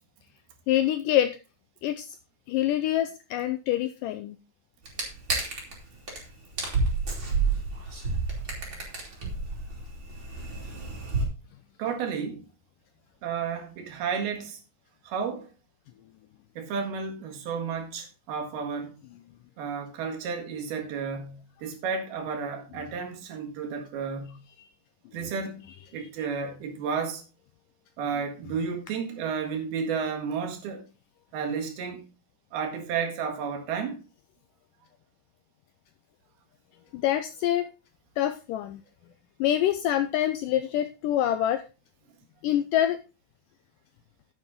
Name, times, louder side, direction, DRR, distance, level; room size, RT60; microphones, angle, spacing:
voice 1, 0.7-1.3 1.8-2.1 2.5-4.4 36.9-37.7 38.2-38.8 39.4-41.6 42.4-43.0, left 12 dB, 85° left, 1.9 m, -25 dB
sound 1, 4.9-5.7 6.1-6.2 6.5-11.3, right 4 dB, 35° right, 3.6 m, -29 dB
voice 2, 11.8-12.5 13.2-14.6 15.0-15.5 16.6-19.0 19.6-24.4 25.1-25.7 25.9-27.2 28.0-30.9 31.3-32.1 32.5-34.0, right 6 dB, 80° right, 3.7 m, -32 dB
10.0 x 8.4 x 3.7 m
omnidirectional pair, 4.4 m